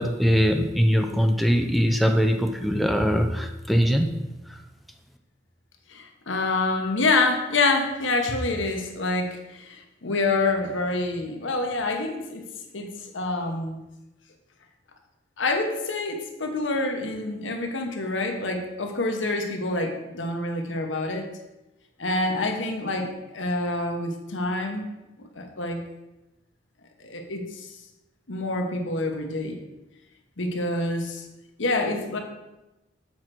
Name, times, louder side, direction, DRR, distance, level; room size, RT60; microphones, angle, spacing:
voice 1, 0.0-4.1 4.5-4.6, equal, ahead, 5 dB, 0.5 m, -22 dB
voice 2, 5.9-12.5 12.7-12.9 13.1-13.8 15.4-21.3 22.0-24.9 25.2-25.8 27.0-27.7 28.3-29.6 30.4-31.2 31.6-32.2, left 2 dB, 85° left, 4 dB, 1.2 m, -27 dB
7.3 x 4.5 x 6.0 m, 0.99 s
head